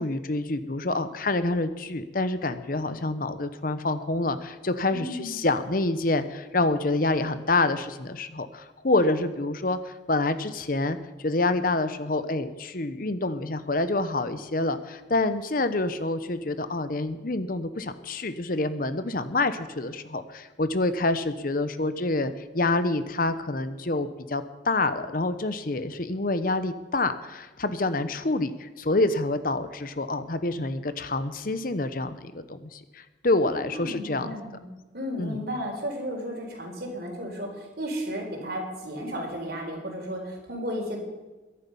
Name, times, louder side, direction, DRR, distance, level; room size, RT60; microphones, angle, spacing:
voice 1, 0.0-34.3 35.2-35.4, left 2 dB, 45° left, 11 dB, 0.8 m, -27 dB
voice 2, 4.9-5.4 33.4-34.6 34.9-41.0, equal, 55° right, 2 dB, 4.1 m, -34 dB
22.5 x 11.0 x 5.5 m, 1.2 s
head